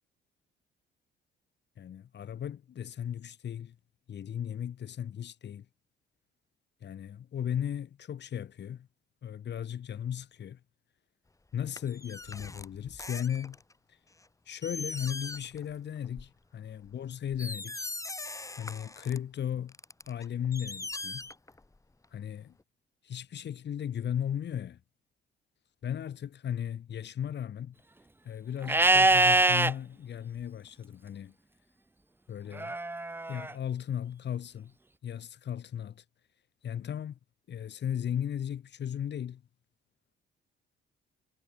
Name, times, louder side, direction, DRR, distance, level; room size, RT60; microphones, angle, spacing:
voice 1, 1.8-3.8 4.1-5.7 6.8-8.9 9.2-10.6 11.5-13.6 14.5-17.9 18.6-19.7 20.1-21.3 22.1-22.6 23.0-24.8 25.8-27.8 28.2-31.3 32.3-32.8 33.3-34.7 35.0-36.0 36.6-37.2 37.5-39.4, left 9 dB, 60° left, 4.3 m, -36 dB
sound 1, 11.8-13.7 14.2-14.3 14.6-15.7 16.0-16.3 16.8-16.9 17.3-19.2 19.7-21.8 22.0-22.1, left 2 dB, 15° left, 3.9 m, -41 dB
Livestock farm animals working animals, 28.7-29.7 32.6-33.5, right 2 dB, 10° right, 0.8 m, -23 dB
cardioid pair, 90°, 20 cm